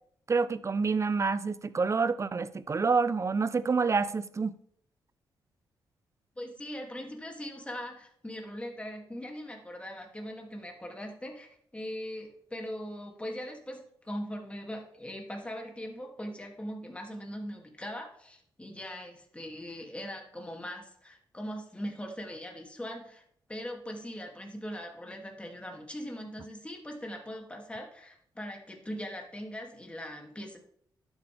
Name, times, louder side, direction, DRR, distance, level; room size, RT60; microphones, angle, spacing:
voice 1, 0.3-4.5, right 4 dB, 35° right, 0.6 m, -28 dB
voice 2, 6.4-23.2 23.5-30.6, equal, 15° left, 2.6 m, -40 dB
11.5 x 8.8 x 3.5 m
cardioid pair, 65°, 8 cm